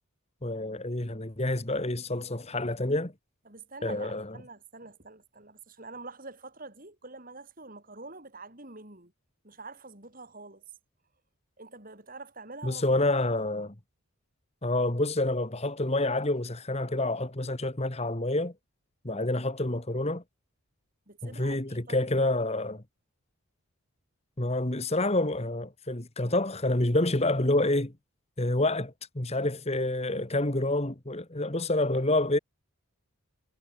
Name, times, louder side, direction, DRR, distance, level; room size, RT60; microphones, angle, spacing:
voice 1, 0.4-3.1 3.8-4.4 12.6-13.7 14.6-18.5 19.0-20.2 21.2-22.8 24.4-27.9 28.4-32.4, left 2 dB, 30° left, 1.7 m, -28 dB
voice 2, 3.5-9.1 9.4-10.6 11.6-12.8 19.1-19.3 21.1-22.3, right 3 dB, 40° right, 4.6 m, -46 dB
head